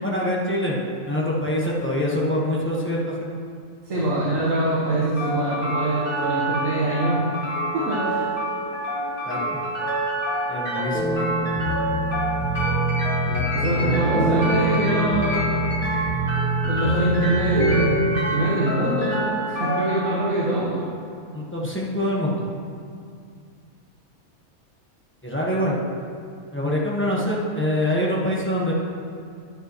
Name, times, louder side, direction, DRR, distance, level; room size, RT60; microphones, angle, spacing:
voice 1, 0.0-0.8 1.1-3.3 9.2-9.6 10.5-11.6 13.2-14.4 21.3-22.4 25.2-25.8 26.5-28.7, left 1 dB, 10° left, -5 dB, 1.2 m, -25 dB
voice 2, 3.8-7.2 7.7-8.3 13.5-15.5 16.6-20.9, right 1 dB, 65° right, -8 dB, 1.8 m, -24 dB
sound 1, 5.2-21.2, right 1 dB, 35° left, 2.4 m, -28 dB
sound 2, 10.9-18.0, right 1 dB, 85° right, 2.6 m, -25 dB
11.0 x 9.8 x 3.1 m, 2.2 s
omnidirectional pair, 1.5 m